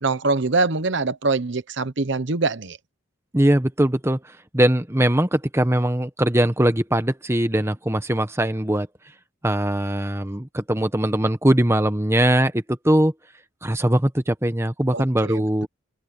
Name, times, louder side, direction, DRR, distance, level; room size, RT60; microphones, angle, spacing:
voice 1, 0.0-2.8 14.9-15.7, right 3 dB, 55° right, 1.0 m, -24 dB
voice 2, 3.3-8.9 9.4-13.1 13.6-15.7, right 1 dB, 10° right, 1.1 m, -21 dB
head